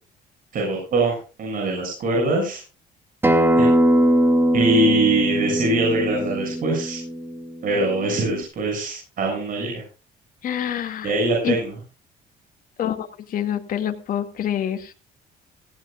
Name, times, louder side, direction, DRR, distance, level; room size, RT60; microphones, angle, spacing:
voice 1, 0.5-2.6 3.5-3.8 4.5-7.0 7.6-9.8 11.0-11.7, right 2 dB, 55° right, 0 dB, 6.8 m, -23 dB
Acoustic guitar, 3.2-8.4, equal, 15° right, 2.5 m, -21 dB
voice 2, 10.4-11.1 11.4-11.6 12.8-14.9, left 10 dB, 55° left, 5 dB, 2.3 m, -26 dB
18.0 x 17.0 x 2.4 m, 0.34 s
cardioid pair, 110°, 17 cm